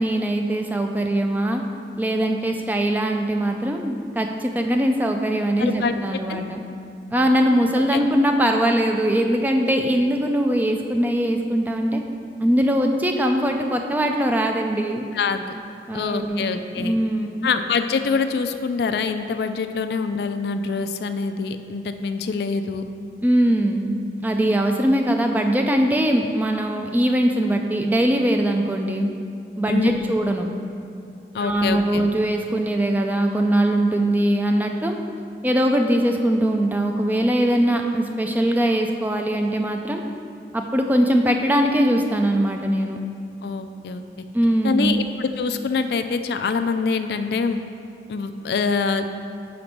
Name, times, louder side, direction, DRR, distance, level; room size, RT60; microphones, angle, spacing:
voice 1, 0.0-1.6 2.0-6.6 7.1-12.0 12.4-15.1 15.9-16.4 16.8-17.5 23.2-29.1 29.6-30.5 31.4-35.0 35.4-40.0 40.5-43.0 44.3-45.0, right 1 dB, 10° right, 3 dB, 0.3 m, -21 dB
voice 2, 5.6-6.4 7.9-8.0 15.1-15.4 15.9-17.0 17.4-22.8 29.7-30.0 31.3-32.1 43.4-44.0 44.6-47.6 48.1-49.0, left 5 dB, 65° left, 8 dB, 0.3 m, -25 dB
5.1 x 5.1 x 5.9 m, 2.6 s
head